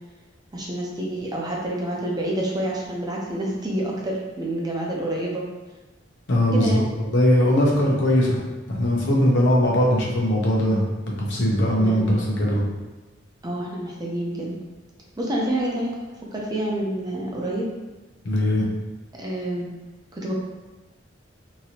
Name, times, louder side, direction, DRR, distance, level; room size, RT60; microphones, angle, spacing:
voice 1, 0.5-5.4 6.5-6.9 11.8-12.1 13.4-14.6 15.2-15.9 16.3-17.7 19.1-19.7 20.1-20.3, right 1 dB, 20° right, -3 dB, 0.5 m, -28 dB
voice 2, 6.3-6.8 7.1-8.4 8.7-10.8 11.2-12.6 18.2-18.7, equal, 75° left, -3 dB, 0.7 m, -20 dB
2.9 x 2.6 x 2.8 m, 1.2 s
head